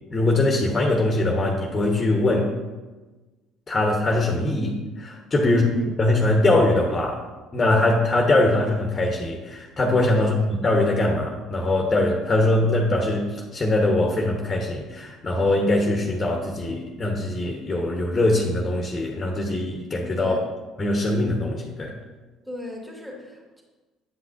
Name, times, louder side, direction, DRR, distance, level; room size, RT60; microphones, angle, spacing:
voice 1, 0.1-2.5 3.7-5.6 6.0-7.2 7.5-20.3 20.8-21.9, left 2 dB, 30° left, 1 dB, 1.1 m, -22 dB
voice 2, 5.4-6.0 10.1-10.4 20.2-20.5 22.5-23.6, left 1 dB, 5° right, -2 dB, 2.2 m, -35 dB
9.1 x 5.8 x 2.6 m, 1.2 s
hypercardioid pair, 65°, 0 cm